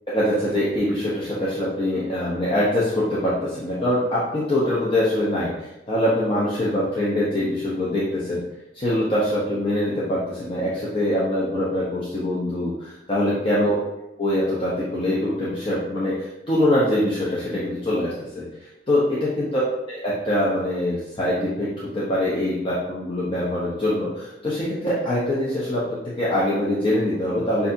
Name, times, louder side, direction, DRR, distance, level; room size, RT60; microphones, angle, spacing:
voice 1, 0.1-8.4 8.7-13.8 14.2-18.4 18.9-19.6 19.9-27.7, left 1 dB, 30° left, -8 dB, 0.8 m, -23 dB
6.8 x 2.7 x 2.7 m, 0.94 s
head